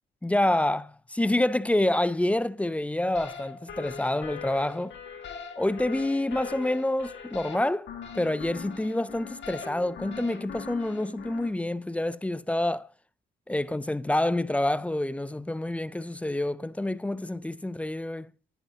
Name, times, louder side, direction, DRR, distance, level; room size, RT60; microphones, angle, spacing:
voice 1, 0.2-4.9 5.6-7.9 8.2-12.9 13.5-18.3, left 1 dB, 5° left, 0.3 m, -27 dB
sound 1, 3.1-11.5, left 6 dB, 65° left, 1.8 m, -41 dB
10.5 x 10.0 x 2.7 m
cardioid pair, 90°, 20 cm